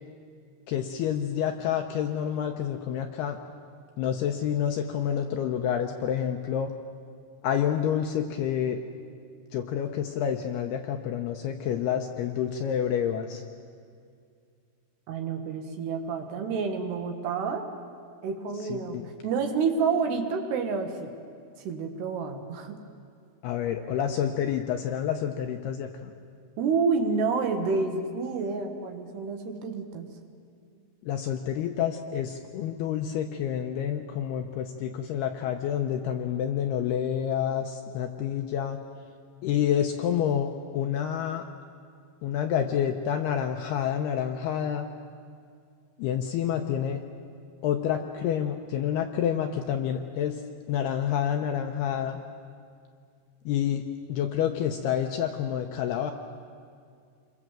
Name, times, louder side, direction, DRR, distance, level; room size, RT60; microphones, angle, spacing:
voice 1, 0.7-3.4 4.0-6.7 7.4-8.8 9.5-13.4 18.7-19.1 23.4-26.1 31.0-38.8 39.4-41.4 42.2-44.9 46.0-47.0 47.6-50.4 50.7-52.2 53.5-53.8 54.1-56.1, left 9 dB, 80° left, 5 dB, 2.5 m, -28 dB
voice 2, 15.1-17.7 18.2-21.1 21.6-22.8 26.6-30.1, right 5 dB, 65° right, 5 dB, 3.4 m, -29 dB
28.0 x 22.5 x 7.5 m, 2.3 s
omnidirectional pair, 5.5 m